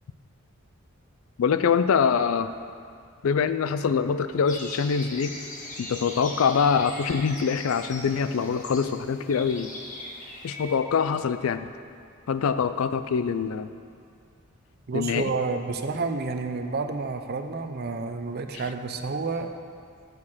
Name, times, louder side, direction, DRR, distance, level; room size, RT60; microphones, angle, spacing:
voice 1, 1.4-2.5 3.2-5.4 5.8-9.7 10.4-11.7 12.3-13.7 14.9-15.3, left 6 dB, 80° left, 12 dB, 0.4 m, -24 dB
sound 1, 4.5-10.7, left 1 dB, 40° left, 1.3 m, -40 dB
voice 2, 14.9-19.5, right 4 dB, 50° right, 7 dB, 0.5 m, -30 dB
6.7 x 6.4 x 7.3 m, 2.2 s
head